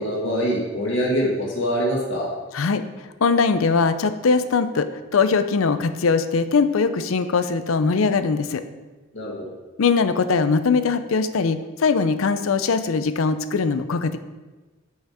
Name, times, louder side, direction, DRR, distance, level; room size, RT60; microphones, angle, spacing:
voice 1, 0.0-2.3 9.1-9.3, equal, 65° left, -3 dB, 2.0 m, -24 dB
voice 2, 3.2-4.9 5.1-8.6 9.8-14.2, left 4 dB, 85° left, 11 dB, 0.5 m, -21 dB
6.3 x 5.6 x 4.7 m, 1.2 s
head